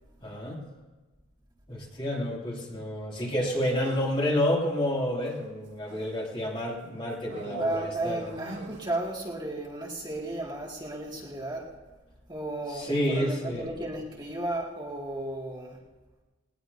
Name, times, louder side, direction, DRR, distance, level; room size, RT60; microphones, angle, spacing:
voice 1, 0.2-0.6 1.7-8.3 12.7-13.7, equal, 25° left, -3 dB, 2.8 m, -29 dB
sound 1, 3.6-4.2 5.3-6.3 7.3-9.1, right 2 dB, 55° right, 2.3 m, -45 dB
voice 2, 7.6-11.7 12.3-15.8, right 1 dB, 20° right, -3 dB, 2.2 m, -34 dB
19.5 x 19.5 x 2.8 m, 1.2 s
head